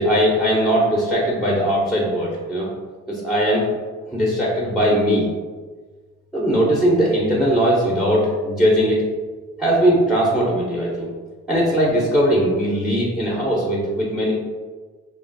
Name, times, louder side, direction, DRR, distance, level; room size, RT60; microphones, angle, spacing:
voice 1, 0.0-2.7 3.1-3.7 4.1-5.3 6.3-9.0 9.6-11.1 11.5-14.3, equal, ahead, -4 dB, 0.6 m, -19 dB
2.9 x 2.3 x 2.5 m, 1.4 s
cardioid pair, 90°, 30 cm